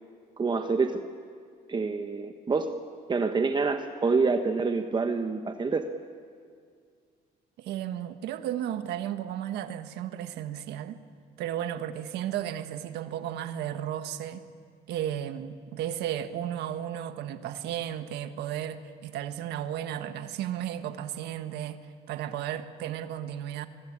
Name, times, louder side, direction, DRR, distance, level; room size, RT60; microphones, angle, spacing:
voice 1, 0.4-1.0 1.7-2.7 3.1-5.8, right 4 dB, 25° right, 1.2 m, -27 dB
voice 2, 7.6-11.0 11.4-14.4 14.9-21.8 22.1-23.7, right 10 dB, 80° right, 1.5 m, -34 dB
27.0 x 22.0 x 8.8 m
cardioid pair, 110°, 17 cm